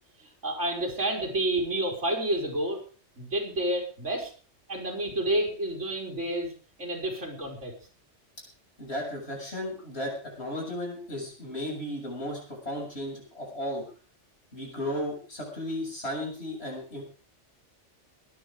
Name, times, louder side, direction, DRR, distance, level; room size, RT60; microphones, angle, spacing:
voice 1, 0.2-2.8 3.2-4.3 4.7-6.5 6.8-7.7, right 1 dB, 85° right, 1 dB, 5.1 m, -29 dB
voice 2, 8.8-10.1 10.4-13.8 14.5-17.0, left 1 dB, 60° left, -1 dB, 7.5 m, -34 dB
22.5 x 9.9 x 5.1 m, 0.39 s
omnidirectional pair, 1.2 m